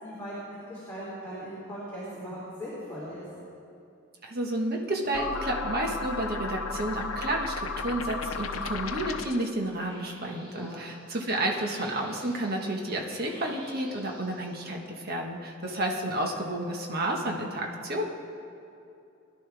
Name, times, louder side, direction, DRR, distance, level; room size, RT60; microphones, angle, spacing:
voice 1, 0.0-3.2 10.5-10.8 15.6-15.8, equal, 10° left, -10 dB, 3.2 m, -39 dB
voice 2, 4.2-18.0, right 1 dB, 50° right, 1 dB, 1.5 m, -31 dB
sound 1, 5.1-9.5, left 4 dB, 85° left, 0.7 m, -34 dB
sound 2, 6.8-7.5 8.1-14.8, equal, 25° right, 3.9 m, -53 dB
20.5 x 11.0 x 3.5 m, 2.6 s
head